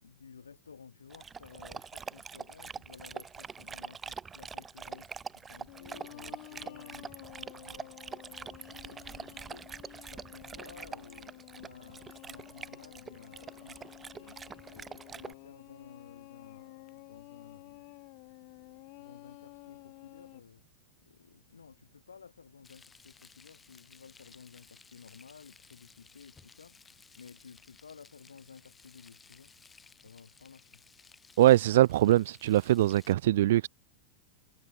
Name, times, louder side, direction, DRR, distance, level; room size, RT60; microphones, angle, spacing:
voice 1, 0.0-8.0 8.3-9.7 10.1-14.4 14.7-17.9 19.0-20.6 21.1-26.9 27.2-29.5 30.0-30.8, left 6 dB, 70° left, 4.3 m, -54 dB
Dog, 1.1-15.3, right 6 dB, 15° right, 1.2 m, -44 dB
sound 1, 5.7-20.4, left 40 dB or more, 45° left, 1.3 m, -52 dB
Frying (food), 22.6-33.1, left 5 dB, 15° left, 5.1 m, -58 dB
voice 2, 31.4-33.7, right 14 dB, 55° right, 0.4 m, -22 dB
figure-of-eight pair, 90°, 0 cm